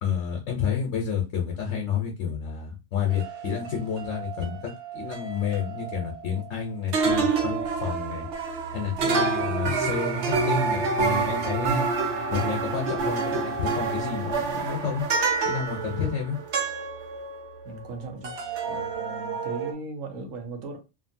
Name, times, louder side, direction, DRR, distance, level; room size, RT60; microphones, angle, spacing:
voice 1, 0.0-8.3 8.7-11.9 12.3-15.1 15.4-16.4, left 7 dB, 75° left, 1.1 m, -30 dB
sound 1, 3.1-6.6 6.9-18.0 18.2-19.7, right 4 dB, 65° right, 1.0 m, -28 dB
sound 2, 7.1-19.0, right 4 dB, 55° left, 0.7 m, -48 dB
voice 2, 17.6-18.4 18.7-20.8, right 3 dB, 90° right, 1.2 m, -38 dB
2.8 x 2.5 x 2.6 m
omnidirectional pair, 1.3 m